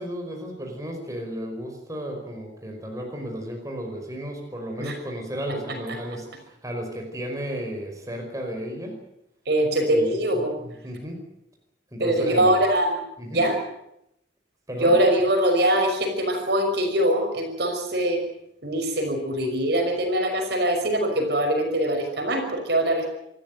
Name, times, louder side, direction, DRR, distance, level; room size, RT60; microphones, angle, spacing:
voice 1, 0.0-8.9 9.9-11.2 11.9-12.6 13.2-13.4 14.7-15.0, equal, 20° right, 2 dB, 5.2 m, -33 dB
voice 2, 9.5-10.6 12.0-13.0 13.3-13.6 14.8-18.2 18.6-23.1, right 1 dB, 65° right, 5 dB, 5.8 m, -22 dB
27.0 x 14.0 x 9.2 m, 0.80 s
head